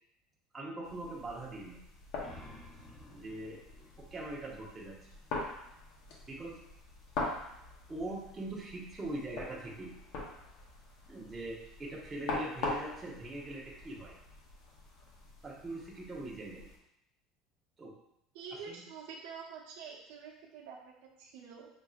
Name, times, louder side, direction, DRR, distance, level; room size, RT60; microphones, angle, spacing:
voice 1, 0.5-1.8 2.4-2.5 3.1-3.6 4.1-4.9 6.3-6.6 7.9-9.9 11.1-14.1 15.4-16.7 17.8-17.9 18.7-18.8, right 2 dB, 15° right, -4 dB, 0.8 m, -42 dB
sound 1, 0.8-16.8, left 2 dB, 60° left, 0.9 m, -43 dB
sound 2, 2.2-5.3, left 2 dB, 25° left, 0.7 m, -55 dB
voice 2, 18.3-21.7, right 6 dB, 85° right, -1 dB, 0.8 m, -47 dB
6.1 x 2.6 x 2.4 m, 0.77 s
cardioid pair, 165°, 0 cm